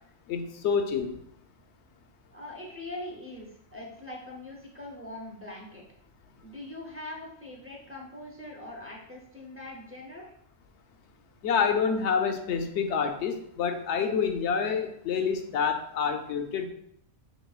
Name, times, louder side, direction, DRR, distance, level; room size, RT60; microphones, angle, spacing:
voice 1, 0.3-1.2 11.4-16.7, left 6 dB, 70° left, 6 dB, 0.8 m, -27 dB
voice 2, 2.3-5.8 6.4-10.3, left 1 dB, 15° right, -2 dB, 0.5 m, -42 dB
5.9 x 2.9 x 2.4 m, 0.71 s
omnidirectional pair, 1.3 m